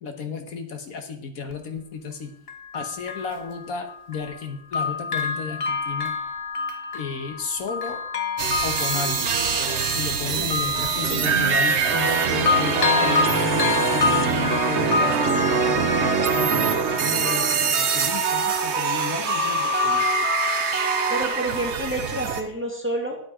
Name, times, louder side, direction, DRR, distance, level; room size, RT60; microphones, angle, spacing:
voice 1, 0.0-2.3 2.7-6.2 6.9-8.0 8.6-9.4 9.9-20.1, left 5 dB, 75° left, 6 dB, 1.5 m, -33 dB
Bell, 1.5-1.6 2.5-4.4 4.7-12.2 12.5-17.1 17.5-17.6, left 5 dB, 45° left, 1.0 m, -28 dB
sound 1, 8.4-22.4, right 5 dB, 55° right, 1.1 m, -23 dB
voice 2, 10.4-10.7 21.1-23.2, right 1 dB, 10° right, 0 dB, 2.0 m, -29 dB
10.5 x 8.8 x 4.8 m, 0.68 s
omnidirectional pair, 1.5 m